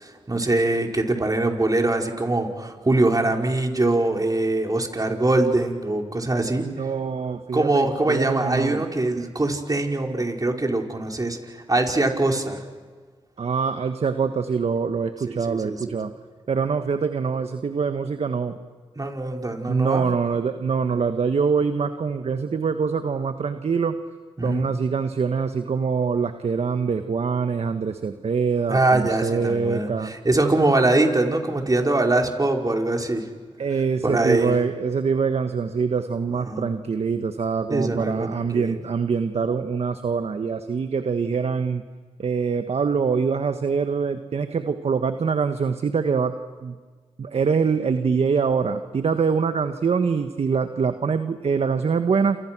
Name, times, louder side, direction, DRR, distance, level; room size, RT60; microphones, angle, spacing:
voice 1, 0.0-6.7 7.5-12.6 15.3-16.0 18.9-20.1 24.4-24.7 28.7-33.3 34.0-34.5 36.5-36.7 37.7-38.7, right 2 dB, 30° right, 2 dB, 5.0 m, -23 dB
voice 2, 6.6-8.8 13.4-16.1 16.5-18.6 19.7-24.0 24.4-30.1 33.6-41.8 42.2-46.3 46.6-46.8 47.2-52.4, right 5 dB, 60° right, 8 dB, 1.5 m, -24 dB
28.5 x 28.5 x 6.2 m, 1.5 s
supercardioid pair, 45°, 12 cm